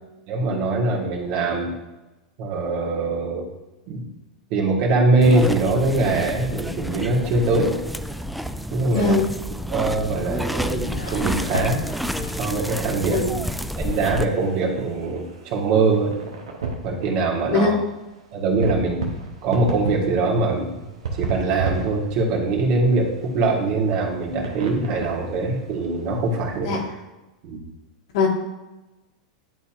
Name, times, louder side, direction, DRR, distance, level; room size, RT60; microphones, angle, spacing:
voice 1, 0.3-1.7 2.4-3.5 3.9-4.0 4.5-7.7 8.7-9.2 9.7-11.8 12.4-13.3 13.8-16.1 16.8-17.8 18.3-19.0 19.4-20.7 21.1-26.7 27.4-27.6, right 3 dB, 50° right, -2 dB, 1.7 m, -22 dB
sound 1, 5.2-14.3, equal, ahead, 0.3 m, -29 dB
voice 2, 8.9-9.3 13.1-13.3 17.5-17.7 26.6-26.8 28.1-28.3, left 4 dB, 65° left, -1 dB, 1.7 m, -20 dB
sound 2, 10.3-13.0, left 4 dB, 90° left, 0.5 m, -35 dB
sound 3, 13.9-26.6, right 4 dB, 75° right, 1.0 m, -34 dB
11.0 x 4.2 x 2.5 m, 1.1 s
hypercardioid pair, 95°, 3 cm